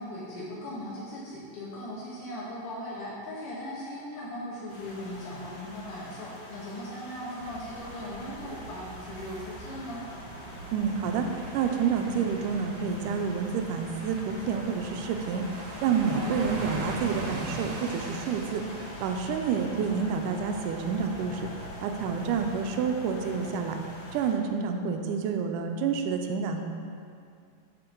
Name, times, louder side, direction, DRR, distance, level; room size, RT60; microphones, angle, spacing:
voice 1, 0.0-10.0 16.1-16.2, left 1 dB, 70° left, -7 dB, 2.8 m, -38 dB
sound 1, 4.7-24.3, left 2 dB, 55° left, 2.0 m, -45 dB
sound 2, 7.4-22.6, right 2 dB, 60° right, 1.7 m, -42 dB
voice 2, 10.7-11.3 11.5-15.5 15.8-18.6 19.0-21.5 21.8-23.8 24.1-26.6, right 6 dB, 80° right, 5 dB, 2.1 m, -28 dB
11.5 x 4.4 x 4.5 m, 2.4 s
omnidirectional pair, 3.9 m